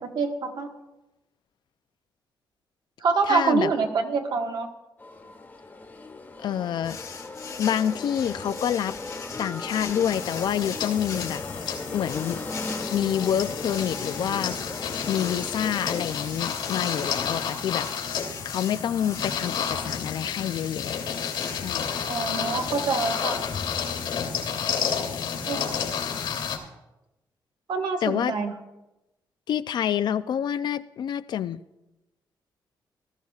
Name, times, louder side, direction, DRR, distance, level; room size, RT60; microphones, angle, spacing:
voice 1, 0.0-0.7 3.0-4.7 22.1-23.4 25.5-25.9 27.7-28.5, right 4 dB, 60° right, 3 dB, 1.4 m, -26 dB
voice 2, 3.3-3.7 6.4-7.0 7.6-9.0 9.4-11.4 11.9-12.4 12.9-14.6 15.1-17.9 18.4-21.0 21.5-21.9 28.0-28.3 29.5-31.6, left 9 dB, 65° left, 13 dB, 0.4 m, -27 dB
sound 1, 5.0-16.1, left 3 dB, 25° left, 1.3 m, -38 dB
sound 2, 6.8-24.2, left 5 dB, 45° left, 1.5 m, -41 dB
sound 3, 10.1-26.6, left 7 dB, 85° left, 2.6 m, -31 dB
19.0 x 13.5 x 2.4 m, 0.97 s
wide cardioid pair, 155°, 8 cm